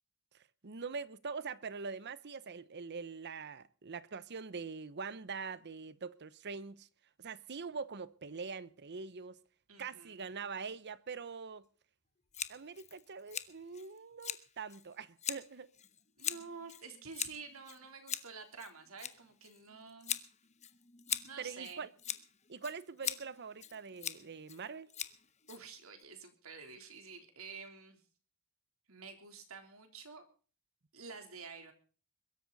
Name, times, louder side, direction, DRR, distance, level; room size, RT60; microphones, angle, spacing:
voice 1, 0.6-6.9 7.2-9.4 9.8-11.7 12.5-15.7 21.4-21.9 22.5-24.9, right 5 dB, 50° right, 0.8 m, -43 dB
voice 2, 9.7-10.2 16.2-20.2 21.2-21.9 25.5-28.0 28.9-30.2 30.9-31.7, right 5 dB, 70° right, 3.5 m, -49 dB
Scissors, 12.3-26.0, left 9 dB, 30° left, 1.0 m, -43 dB
22.5 x 13.0 x 4.1 m
head